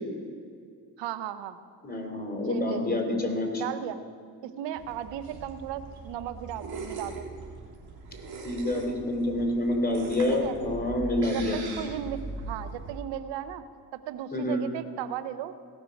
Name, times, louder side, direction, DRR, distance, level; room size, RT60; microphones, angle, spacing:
voice 1, 1.0-1.6 2.5-3.2 3.6-4.0 4.4-7.3 10.3-10.6 11.3-12.2 12.5-13.6 14.1-15.5, right 11 dB, 85° right, 12 dB, 0.7 m, -36 dB
voice 2, 1.8-3.6 8.4-11.6 14.3-14.6, left 1 dB, 20° left, 2 dB, 3.3 m, -27 dB
sound 1, 4.8-12.9, right 3 dB, 60° right, 3.2 m, -41 dB
17.0 x 6.2 x 5.2 m, 2.2 s
supercardioid pair, 50°, 42 cm